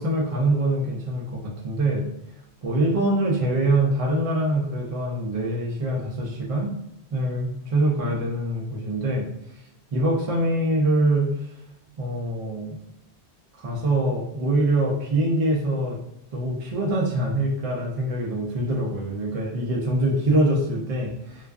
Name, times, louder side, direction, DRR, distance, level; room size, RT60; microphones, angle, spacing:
voice 1, 0.0-2.0 2.6-6.7 7.1-9.3 9.9-11.3 12.0-12.8 13.6-16.0 16.3-21.5, right 1 dB, 55° right, -2 dB, 0.4 m, -24 dB
2.4 x 2.2 x 2.3 m, 0.84 s
omnidirectional pair, 1.1 m